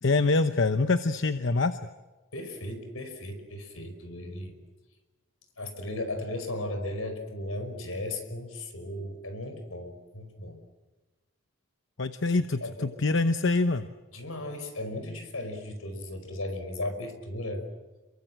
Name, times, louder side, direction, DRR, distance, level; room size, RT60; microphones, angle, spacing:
voice 1, 0.0-1.8 12.0-13.9, left 3 dB, 60° left, 10 dB, 0.9 m, -25 dB
voice 2, 2.3-4.6 5.6-10.6 12.6-12.9 14.1-17.6, left 1 dB, 80° left, 7 dB, 5.3 m, -36 dB
28.0 x 23.0 x 7.6 m, 1.2 s
head